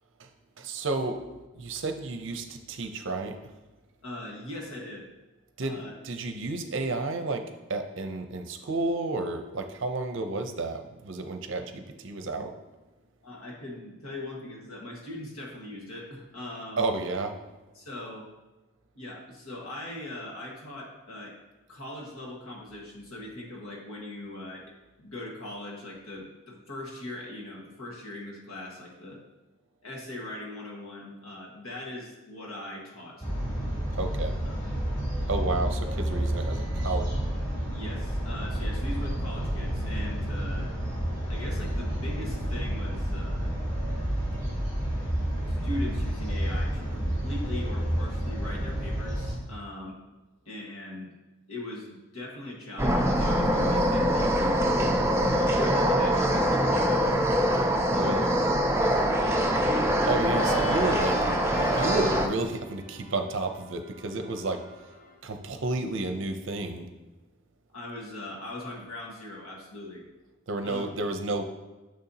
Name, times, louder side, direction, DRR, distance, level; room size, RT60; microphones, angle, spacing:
voice 1, 0.6-1.2 1.5-3.4 5.6-12.6 16.8-17.4 33.9-34.3 35.3-37.1 57.9-58.3 60.1-61.2 61.7-64.6 65.2-66.9 70.5-71.4, right 2 dB, 60° right, 6 dB, 0.6 m, -31 dB
voice 2, 4.0-5.0 5.6-5.9 13.2-16.9 17.7-18.3 18.9-21.4 21.7-24.7 25.0-29.2 29.8-33.3 34.4-34.6 37.7-40.7 41.3-43.5 45.5-50.0 50.4-51.1 51.5-54.6 55.2-57.1 57.9-58.2 58.8-60.3 67.7-70.0 70.6-70.8, left 1 dB, 75° left, -2 dB, 1.6 m, -40 dB
sound 1, 33.2-49.3, equal, 20° left, 2.2 m, -30 dB
sound 2, 52.8-62.3, equal, 10° right, 0.4 m, -24 dB
Organ, 60.3-65.1, right 2 dB, 35° left, 0.8 m, -36 dB
6.7 x 6.4 x 2.8 m, 1.1 s
head